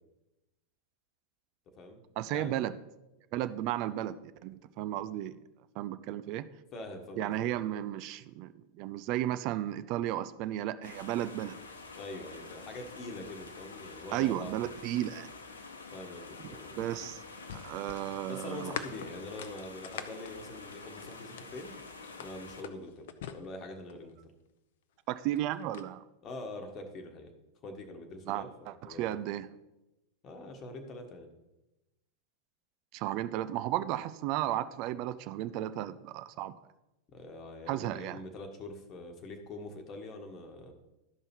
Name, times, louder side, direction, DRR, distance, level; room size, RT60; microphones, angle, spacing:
voice 1, 2.2-2.7 3.3-5.4 5.8-6.5 7.2-8.5 8.8-11.5 14.1-15.3 16.8-17.2 17.5-18.8 25.1-26.0 28.3-29.5 32.9-36.5 37.7-38.2, right 13 dB, 40° right, 13 dB, 0.4 m, -34 dB
voice 2, 6.7-7.5 12.0-14.6 15.9-16.8 18.3-21.7 22.2-24.2 26.2-27.3 27.6-29.2 30.2-31.3 37.1-40.7, left 2 dB, 30° left, 4 dB, 1.4 m, -44 dB
sound 1, 10.8-22.6, left 4 dB, 70° left, 0.9 m, -48 dB
sound 2, 16.3-21.6 22.0-24.1 25.1-25.9, left 9 dB, 55° left, 0.6 m, -44 dB
12.5 x 5.4 x 4.4 m, 0.98 s
figure-of-eight pair, 90°, 0 cm